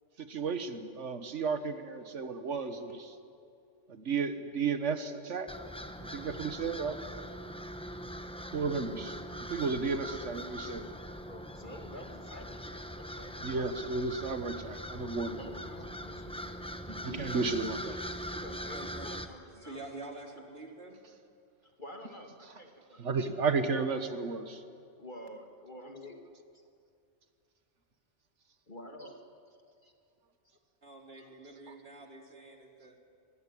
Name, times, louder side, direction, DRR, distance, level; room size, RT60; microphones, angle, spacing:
voice 1, 0.2-3.1 3.9-5.5 6.0-7.0 8.5-9.1 9.5-10.9 13.4-15.4 17.0-17.9 18.3-18.4 23.0-24.6, right 4 dB, 80° right, 9 dB, 1.6 m, -33 dB
sound 1, 5.5-19.3, equal, 5° left, 1.0 m, -42 dB
voice 2, 11.2-13.7 15.2-17.7 18.4-19.8 21.8-23.1 25.0-26.2 28.7-29.2 29.5-29.9 31.1-31.3, left 1 dB, 45° left, 3 dB, 2.4 m, -49 dB
voice 3, 18.7-19.1 19.5-21.0 30.8-33.0, right 2 dB, 55° right, 1 dB, 3.7 m, -47 dB
25.0 x 21.0 x 10.0 m, 2.4 s
omnidirectional pair, 1.2 m